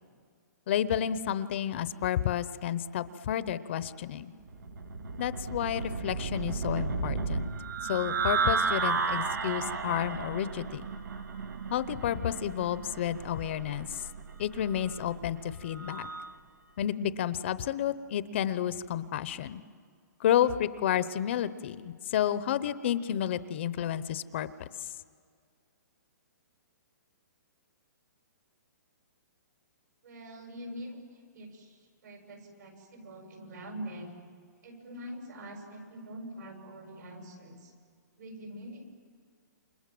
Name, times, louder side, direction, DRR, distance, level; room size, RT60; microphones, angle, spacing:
voice 1, 0.7-4.3 5.2-7.5 7.8-10.9 11.7-14.0 14.4-16.1 16.8-19.6 20.2-24.5, left 10 dB, 40° left, 15 dB, 0.8 m, -31 dB
sound 1, 4.5-16.4, right 5 dB, 90° right, 2.1 m, -34 dB
voice 2, 30.0-34.1 34.6-37.7 38.2-38.9, equal, 70° right, 4 dB, 7.4 m, -44 dB
28.5 x 26.5 x 7.7 m, 2.1 s
hypercardioid pair, 165°, 10 cm